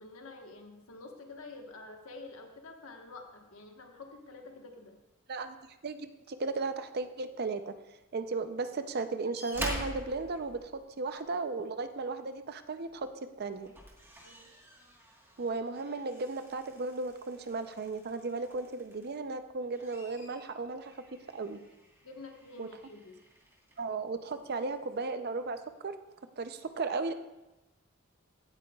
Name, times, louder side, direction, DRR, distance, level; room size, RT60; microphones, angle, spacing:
voice 1, 0.0-5.0 14.2-14.5 22.0-23.2, left 3 dB, 85° left, 2 dB, 1.3 m, -48 dB
voice 2, 5.8-7.7 8.1-13.1 13.4-13.7 15.4-21.6 22.6-22.7 23.8-25.9 26.4-27.1, right 3 dB, 50° right, 10 dB, 0.6 m, -35 dB
sound 1, 9.3-11.3 12.8-13.0 13.5-19.2 19.6-23.8 24.7-24.8, equal, 10° right, 1.4 m, -46 dB
15.5 x 8.8 x 2.4 m, 1.0 s
head